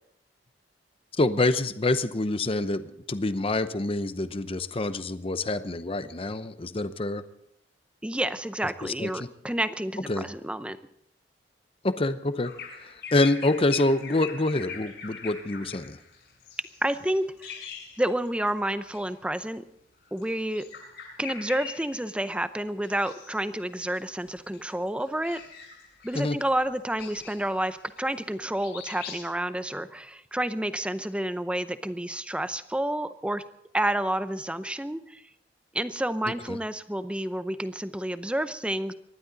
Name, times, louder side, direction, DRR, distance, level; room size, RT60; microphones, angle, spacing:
voice 1, 1.2-7.2 8.8-9.3 10.1-10.3 11.8-12.5 12.8-16.0 26.1-26.4 36.5-36.6, left 2 dB, 30° left, 12 dB, 0.7 m, -26 dB
voice 2, 8.0-10.8 16.8-17.5 18.0-19.6 20.1-20.7 21.2-25.4 26.0-33.4 33.7-35.2 35.7-38.9, right 1 dB, 5° right, 12 dB, 0.6 m, -29 dB
Bird vocalization bird call bird song, 12.4-18.5 18.8-19.0 20.1-22.4 22.8-23.5 23.8-28.4 28.6-29.2, left 6 dB, 60° left, 7.3 m, -42 dB
25.0 x 11.5 x 4.0 m, 0.74 s
head